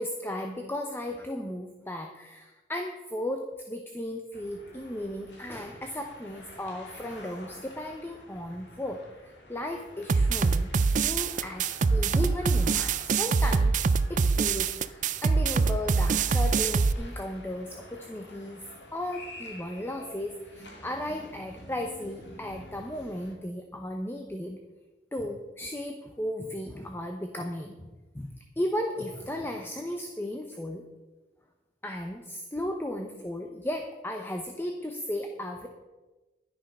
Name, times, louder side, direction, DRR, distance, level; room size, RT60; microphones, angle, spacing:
voice 1, 0.0-10.7 11.0-13.8 14.1-18.6 18.9-24.6 25.1-27.9 28.1-30.8 31.8-35.7, left 1 dB, 10° left, 4 dB, 0.8 m, -35 dB
sound 1, 4.3-23.3, left 1 dB, 65° left, 2.6 m, -49 dB
sound 2, 10.1-16.9, right 4 dB, 40° right, 0.4 m, -24 dB
11.5 x 10.0 x 5.4 m, 1.2 s
head